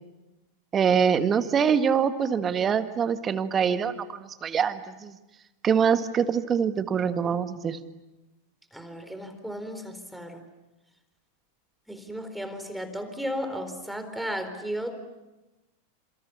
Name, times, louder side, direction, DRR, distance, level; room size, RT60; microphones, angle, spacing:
voice 1, 0.7-5.2 5.6-7.8, right 7 dB, 25° right, 10 dB, 1.7 m, -24 dB
voice 2, 8.7-10.4 11.9-15.1, equal, ahead, 8 dB, 4.3 m, -34 dB
30.0 x 28.0 x 7.1 m, 1.0 s
figure-of-eight pair, 90°, 0 cm